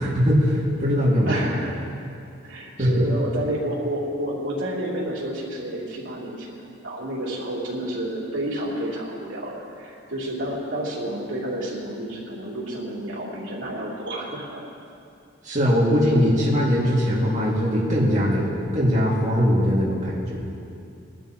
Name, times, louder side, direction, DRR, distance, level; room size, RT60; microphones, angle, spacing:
voice 1, 0.0-1.4 2.8-3.1 15.4-20.4, equal, 40° right, -7 dB, 2.2 m, -21 dB
voice 2, 1.3-1.9 2.4-6.5 6.8-14.6, right 1 dB, 80° right, -5 dB, 3.2 m, -30 dB
22.0 x 12.5 x 3.0 m, 2.5 s
head